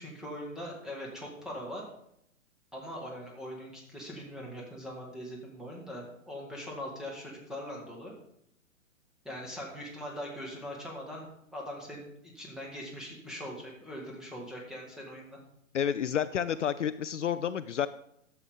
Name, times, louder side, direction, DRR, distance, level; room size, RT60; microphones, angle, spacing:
voice 1, 0.0-1.8 2.7-8.1 9.2-15.4, equal, ahead, -2 dB, 1.6 m, -41 dB
voice 2, 15.7-17.9, left 9 dB, 65° left, 13 dB, 0.5 m, -30 dB
11.5 x 7.0 x 3.6 m, 0.74 s
figure-of-eight pair, 120°, 40 cm